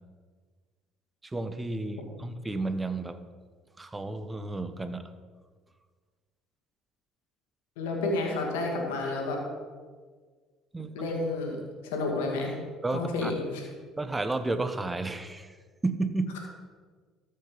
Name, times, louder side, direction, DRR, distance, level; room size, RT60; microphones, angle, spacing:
voice 1, 1.3-3.2 3.8-5.0 10.7-10.9 12.8-13.3 14.0-15.5 15.8-16.4, right 2 dB, 20° right, 10 dB, 0.9 m, -32 dB
voice 2, 7.8-9.4 10.9-11.6 11.8-12.5 12.9-13.7, left 2 dB, 80° left, 1 dB, 2.1 m, -30 dB
13.5 x 5.5 x 5.3 m, 1.5 s
hypercardioid pair, 65°, 0 cm